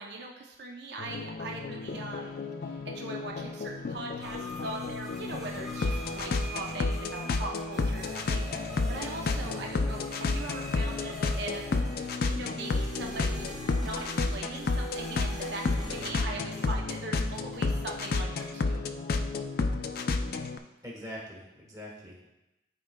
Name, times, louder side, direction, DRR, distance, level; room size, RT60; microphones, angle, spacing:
voice 1, 0.0-2.4 2.6-11.7 11.9-13.5 13.8-18.8, right 2 dB, 60° right, -1 dB, 0.7 m, -41 dB
sound 1, 1.0-20.6, left 3 dB, 50° left, 0.4 m, -31 dB
sound 2, 4.2-17.1 17.3-18.5, equal, ahead, 1.1 m, -44 dB
voice 2, 20.8-22.3, equal, 20° right, -3 dB, 1.4 m, -43 dB
12.5 x 4.4 x 2.2 m, 0.97 s
head